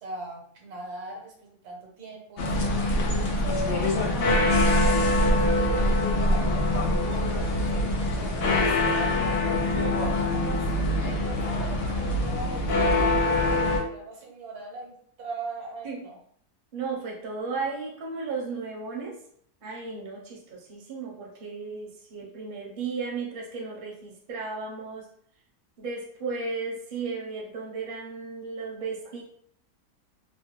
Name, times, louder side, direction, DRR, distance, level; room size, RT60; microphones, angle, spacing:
voice 1, 0.0-4.1 4.6-9.0 9.8-10.6 11.0-16.2, right 3 dB, 80° right, 0 dB, 1.3 m, -41 dB
sound 1, 2.4-13.8, left 1 dB, 85° left, 0.5 m, -24 dB
voice 2, 16.7-19.2 19.6-25.1 25.8-29.2, right 4 dB, 45° right, -2 dB, 0.7 m, -35 dB
3.0 x 2.2 x 3.0 m, 0.63 s
omnidirectional pair, 1.7 m